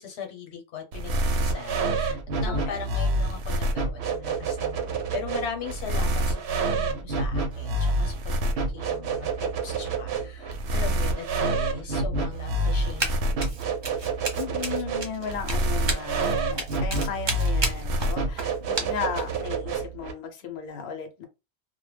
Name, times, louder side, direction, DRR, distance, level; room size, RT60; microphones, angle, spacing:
voice 1, 0.0-8.2 8.4-13.6, left 6 dB, 85° left, 1.0 m, -39 dB
sound 1, 0.9-20.1, right 2 dB, 80° right, 0.8 m, -27 dB
voice 2, 2.4-2.8 14.4-21.2, left 6 dB, 65° left, 0.8 m, -35 dB
Run, 13.0-13.2 13.4-19.4, right 3 dB, 35° right, 0.5 m, -32 dB
2.1 x 2.1 x 3.2 m
omnidirectional pair, 1.1 m